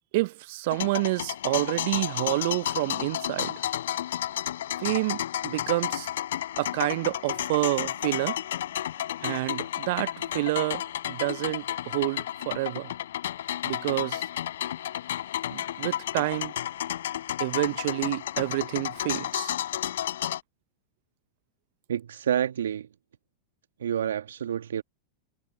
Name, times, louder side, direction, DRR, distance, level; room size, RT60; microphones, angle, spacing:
voice 1, 0.1-3.6 4.8-6.1 6.6-8.4 9.2-12.9 13.6-14.3 15.5-16.5 17.4-19.5, right 20 dB, 55° right, 0.9 m, -28 dB
sound 1, 0.7-20.4, left 11 dB, 65° left, 7.3 m, -32 dB
voice 2, 21.9-22.9 23.8-24.8, right 9 dB, 70° right, 1.5 m, -28 dB
figure-of-eight pair, 90°, 0 cm